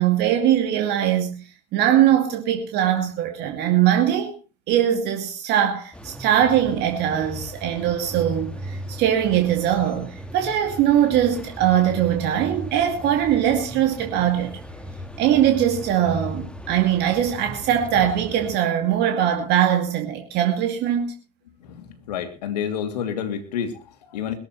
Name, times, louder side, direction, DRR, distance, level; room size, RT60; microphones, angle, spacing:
voice 1, 0.0-1.4 1.7-4.3 4.7-14.6 15.2-21.1, right 10 dB, 55° right, 2.4 m, -21 dB
sound 1, 5.9-18.6, equal, 5° left, 2.2 m, -37 dB
voice 2, 21.7-24.3, left 8 dB, 80° left, 2.8 m, -29 dB
22.0 x 13.5 x 3.1 m
hypercardioid pair, 80°, 21 cm